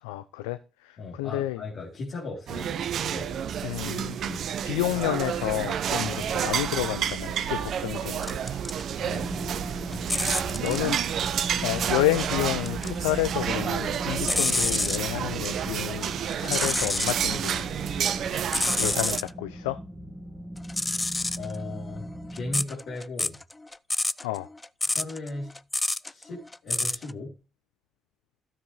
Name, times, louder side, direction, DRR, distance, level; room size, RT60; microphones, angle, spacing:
voice 1, 0.0-1.6 3.6-4.2 4.7-8.6 10.6-11.0 11.6-17.7 18.8-19.8 24.2-24.5, left 16 dB, 90° left, 0.4 m, -30 dB
voice 2, 1.0-3.4 4.2-4.5 6.0-6.3 9.0-9.6 9.9-10.7 21.4-22.1 22.3-23.4 24.8-25.6 26.1-27.4, left 2 dB, 60° left, 3.7 m, -37 dB
sound 1, 2.5-19.2, right 8 dB, 60° right, 0.9 m, -30 dB
sound 2, 8.2-8.8 9.2-10.9 12.1-13.0 13.4-15.0 16.3-17.2 17.7-19.3 20.6-27.1, left 2 dB, 15° left, 0.4 m, -29 dB
sound 3, 9.1-22.6, equal, 10° right, 1.8 m, -39 dB
12.5 x 7.5 x 3.4 m
hypercardioid pair, 60°, 0 cm